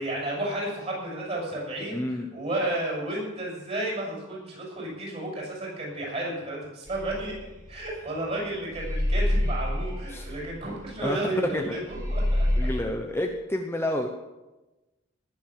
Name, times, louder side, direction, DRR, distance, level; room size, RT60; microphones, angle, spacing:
voice 1, 0.0-7.3 7.7-12.5, right 1 dB, 30° right, -3 dB, 6.8 m, -32 dB
voice 2, 1.9-2.3 10.1-10.3 11.0-11.8 12.6-14.1, left 1 dB, 10° left, 3 dB, 0.8 m, -29 dB
sound 1, 6.9-8.3 8.7-11.6 11.9-12.8, left 1 dB, 15° right, 2.9 m, -27 dB
19.0 x 7.7 x 7.5 m, 1.1 s
head